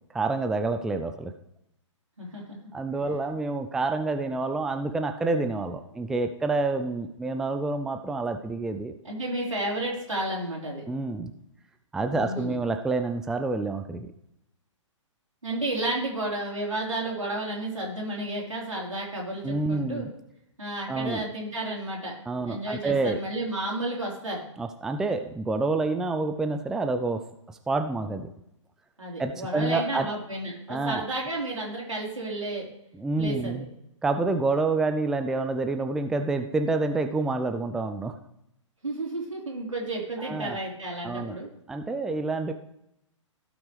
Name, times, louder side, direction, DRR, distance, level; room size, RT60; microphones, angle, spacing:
voice 1, 0.1-1.3 2.7-8.9 10.9-11.3 11.9-14.1 19.4-20.1 20.9-21.2 22.3-23.2 24.6-27.2 27.7-28.3 29.2-30.1 30.7-31.1 32.9-33.7 34.0-38.1 40.2-40.6 41.0-41.4 41.7-42.5, right 3 dB, 5° right, 6 dB, 0.4 m, -28 dB
voice 2, 2.2-2.6 9.0-10.8 12.2-12.6 15.4-20.1 20.6-22.2 22.4-24.4 29.0-32.7 33.2-33.7 38.8-41.5, right 1 dB, 85° right, -3 dB, 3.9 m, -32 dB
16.0 x 5.9 x 3.3 m, 0.80 s
figure-of-eight pair, 120°, 16 cm